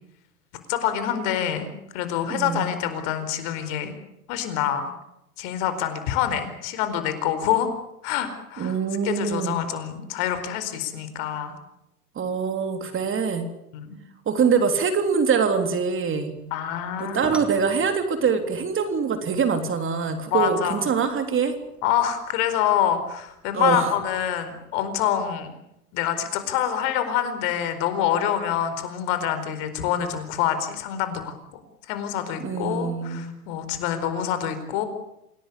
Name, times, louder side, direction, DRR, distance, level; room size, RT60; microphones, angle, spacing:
voice 1, 0.7-3.9 4.3-4.9 5.4-7.7 8.0-8.8 9.0-11.5 13.7-14.0 16.5-17.2 20.3-20.8 21.8-25.5 25.9-31.3 31.9-34.8, left 10 dB, 55° left, 10 dB, 4.6 m, -26 dB
voice 2, 2.3-2.7 8.6-9.6 12.1-13.5 14.2-16.3 17.0-21.5 23.5-23.9 32.4-33.3, right 6 dB, 25° right, 7 dB, 3.4 m, -24 dB
sound 1, 16.4-25.3, equal, ahead, 4.0 m, -46 dB
27.5 x 17.5 x 8.4 m, 0.82 s
hypercardioid pair, 105°, 45 cm